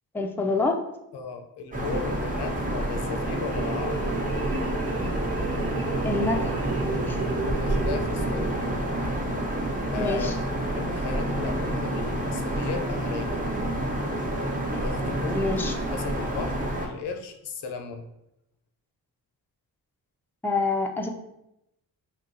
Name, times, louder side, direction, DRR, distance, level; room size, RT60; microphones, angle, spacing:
voice 1, 0.1-0.8 6.0-6.5 7.1-7.2 10.0-10.3 15.3-15.7 20.4-21.1, left 3 dB, 5° left, 2 dB, 0.4 m, -26 dB
voice 2, 1.1-4.0 7.6-8.5 9.9-10.4 10.7-13.4 14.7-15.4 15.9-18.1, left 5 dB, 90° left, 6 dB, 0.6 m, -36 dB
sound 1, 1.7-16.9, right 1 dB, 20° right, 0.9 m, -28 dB
sound 2, 3.5-9.2, right 3 dB, 75° right, 0.7 m, -33 dB
5.2 x 2.8 x 2.7 m, 0.84 s
cardioid pair, 90°, 39 cm